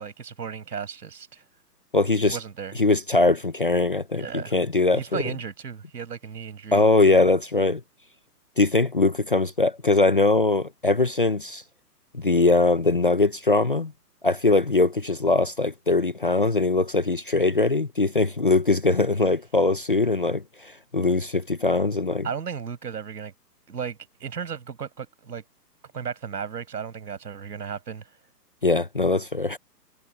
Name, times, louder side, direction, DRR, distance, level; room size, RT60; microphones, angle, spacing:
voice 1, 0.0-1.4 2.2-2.8 4.2-4.6 4.9-6.8 22.2-23.3 23.7-25.4 25.9-28.1, right 7 dB, 70° right, 6.6 m, -35 dB
voice 2, 1.9-2.4 2.8-5.2 6.7-7.8 8.6-11.6 12.1-13.9 14.2-22.3 28.6-29.6, left 3 dB, 35° left, 0.6 m, -21 dB
hypercardioid pair, 175°, 50 cm